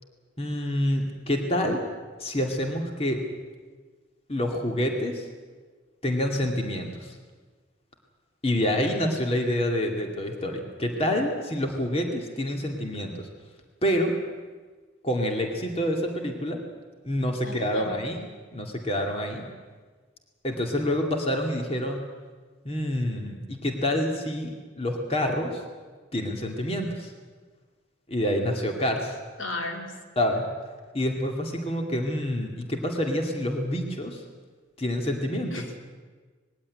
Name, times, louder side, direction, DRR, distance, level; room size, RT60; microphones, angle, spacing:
voice 1, 0.4-1.8 2.2-3.2 4.3-5.3 6.0-7.2 8.4-13.3 13.8-14.1 15.0-16.6 17.0-19.5 20.4-22.0 22.6-25.6 26.1-27.1 28.1-29.2 30.2-30.5 30.9-34.2 34.8-35.5, left 1 dB, 30° left, 2 dB, 2.3 m, -27 dB
voice 2, 17.4-18.0 29.4-30.0 35.5-35.8, left 2 dB, 85° left, 3 dB, 3.2 m, -35 dB
20.5 x 16.0 x 9.7 m, 1.4 s
head